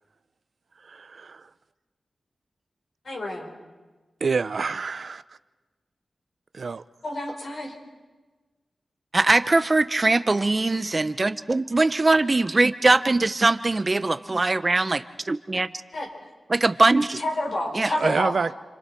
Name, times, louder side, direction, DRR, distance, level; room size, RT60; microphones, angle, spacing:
voice 1, 0.8-1.5 4.2-5.2 6.5-6.8 18.0-18.5, right 4 dB, 65° right, 14 dB, 0.6 m, -27 dB
voice 2, 3.0-3.5 7.0-7.7 15.9-16.1 17.2-18.3, left 1 dB, 65° left, -1 dB, 5.6 m, -29 dB
voice 3, 9.1-15.7 16.5-17.2 17.7-17.9, right 2 dB, 35° right, 12 dB, 0.8 m, -21 dB
30.0 x 25.0 x 4.6 m, 1.3 s
cardioid pair, 60°, 0 cm